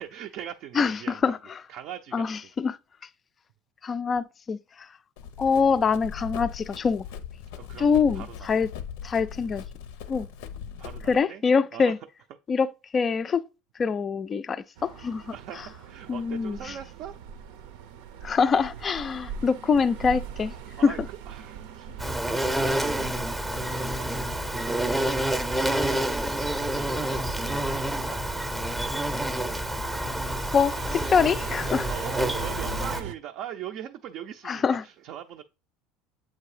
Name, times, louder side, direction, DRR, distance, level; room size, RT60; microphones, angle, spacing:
voice 1, 0.0-1.3 1.7-2.4 7.6-8.7 10.8-11.4 11.7-11.9 15.3-17.1 20.8-25.2 26.8-27.8 28.1-28.2 31.9-35.4, right 10 dB, 50° right, 0.4 m, -41 dB
voice 2, 0.7-1.6 2.1-2.8 3.8-4.9 5.4-7.0 7.8-8.7 9.0-9.6 10.1-10.3 11.1-12.0 12.5-13.4 13.8-15.7 16.1-16.8 18.2-20.5 20.8-20.9 30.5-31.9 34.4-34.8, left 5 dB, 20° left, 0.3 m, -25 dB
Run, 5.2-11.2, left 7 dB, 85° left, 0.6 m, -39 dB
sound 1, 14.8-33.1, right 7 dB, 85° right, 0.7 m, -42 dB
Insect, 22.0-33.0, right 1 dB, 5° right, 0.7 m, -28 dB
7.6 x 2.7 x 4.8 m
cardioid pair, 160°, 0 cm